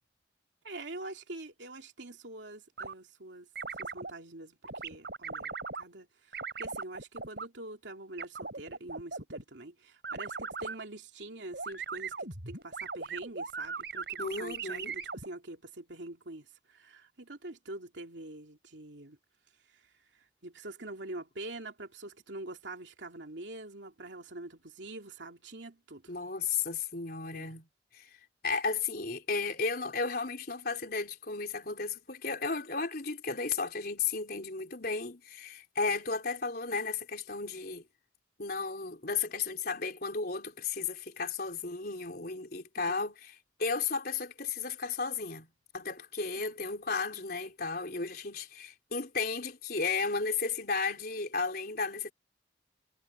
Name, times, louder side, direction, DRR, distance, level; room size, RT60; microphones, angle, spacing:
voice 1, 0.6-3.5 3.7-19.2 19.7-26.1 27.3-27.5 42.8-43.0 46.4-46.5, right 2 dB, 80° right, 2.7 m, -45 dB
sound 1, 2.8-2.9 3.6-4.1 4.6-5.8 6.3-7.5 8.2-9.4 10.0-10.8 11.5-15.3, right 4 dB, 60° right, 6.2 m, -39 dB
voice 2, 14.2-14.9 26.1-27.7 27.9-28.1 28.4-37.9 38.4-43.3 43.6-45.5 45.7-52.1, left 4 dB, 55° left, 4.1 m, -34 dB
head